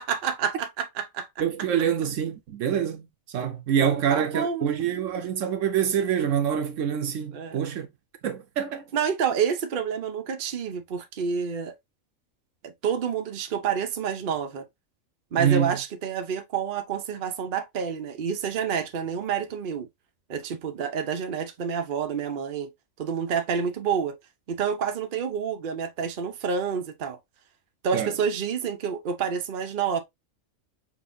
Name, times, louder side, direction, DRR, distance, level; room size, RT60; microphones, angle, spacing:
voice 1, 0.0-1.3 3.8-4.8 7.3-7.6 8.9-11.7 12.6-14.7 15.3-19.9 20.3-22.7 23.0-24.2 24.5-27.2 27.8-30.0, right 7 dB, 50° right, 0.7 m, -28 dB
voice 2, 1.4-7.9 8.2-8.8 15.4-15.8 27.9-28.1, right 8 dB, 70° right, 1.0 m, -26 dB
5.6 x 2.5 x 2.6 m
omnidirectional pair, 1.4 m